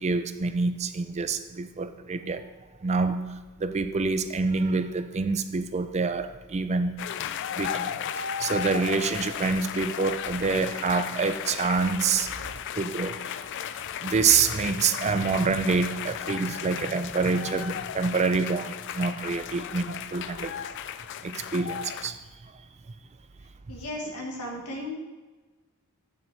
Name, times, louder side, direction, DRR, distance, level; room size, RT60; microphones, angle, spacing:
voice 1, 0.0-2.4 2.8-3.2 3.6-7.0 7.5-7.9 8.4-12.3 12.8-13.3 14.0-20.5 21.2-22.2, right 4 dB, 30° right, 10 dB, 0.4 m, -26 dB
sound 1, 7.0-22.1, left 9 dB, 55° left, 0.3 m, -35 dB
voice 2, 23.7-24.9, left 1 dB, 80° left, -1 dB, 1.7 m, -35 dB
8.7 x 7.0 x 3.3 m, 1.3 s
head